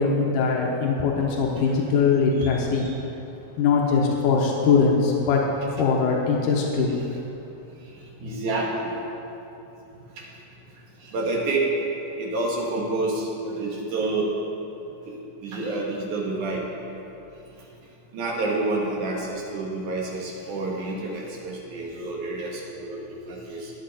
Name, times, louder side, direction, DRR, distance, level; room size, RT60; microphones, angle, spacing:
voice 1, 0.0-2.9 3.6-5.4 5.7-6.9, left 5 dB, 90° left, -1 dB, 2.6 m, -21 dB
voice 2, 2.4-2.9 8.2-8.9 10.2-10.3 11.0-11.7 12.2-14.3 15.4-16.6 18.1-23.7, right 2 dB, 75° right, -2 dB, 3.1 m, -28 dB
14.5 x 10.0 x 4.2 m, 2.9 s
omnidirectional pair, 3.6 m